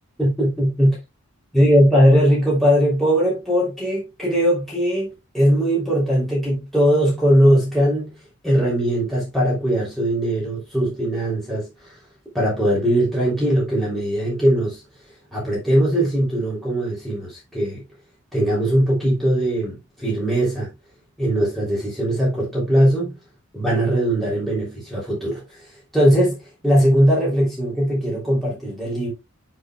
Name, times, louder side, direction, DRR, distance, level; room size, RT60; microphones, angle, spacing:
voice 1, 0.2-1.0 1.5-8.1 8.4-11.9 12.3-14.8 15.3-17.8 18.3-20.7 21.2-23.2 23.5-29.1, equal, ahead, 3.2 m, -20 dB
7.9 x 7.8 x 2.3 m
head